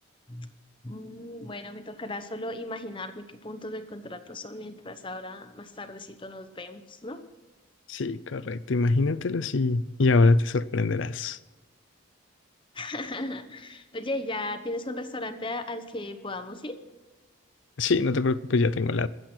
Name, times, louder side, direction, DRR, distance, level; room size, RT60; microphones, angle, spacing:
voice 1, 0.8-7.2 12.7-16.8, left 2 dB, 25° left, 0.9 m, -36 dB
voice 2, 7.9-11.4 17.8-19.1, left 3 dB, 65° left, 0.6 m, -24 dB
22.5 x 7.9 x 4.5 m
head